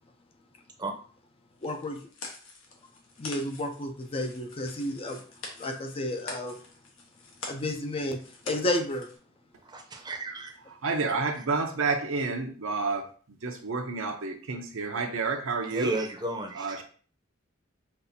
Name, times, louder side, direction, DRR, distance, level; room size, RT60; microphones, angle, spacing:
sound 1, 1.6-9.2, left 3 dB, 75° left, 1.0 m, -45 dB
voice 1, 1.6-2.0 3.2-5.2 5.6-6.6 7.5-9.1, left 1 dB, 30° left, 5 dB, 0.5 m, -31 dB
voice 2, 9.6-10.5 15.7-16.8, right 2 dB, 20° right, 3 dB, 0.7 m, -33 dB
voice 3, 10.7-13.1 13.4-15.9 16.5-16.8, right 4 dB, 75° right, 4 dB, 0.7 m, -30 dB
5.3 x 2.6 x 2.7 m, 0.43 s
head